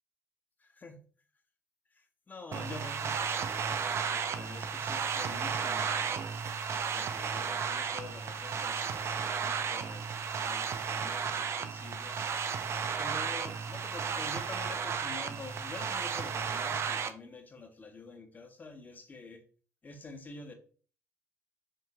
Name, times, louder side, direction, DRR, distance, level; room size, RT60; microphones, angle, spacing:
voice 1, 0.6-1.0 1.9-6.3 6.9-12.2 13.0-19.4 19.8-20.5, left 3 dB, 25° left, 0.7 m, -47 dB
sound 1, 2.5-17.1, right 6 dB, 35° right, 0.4 m, -34 dB
3.7 x 3.4 x 2.7 m
figure-of-eight pair, 50°, 8 cm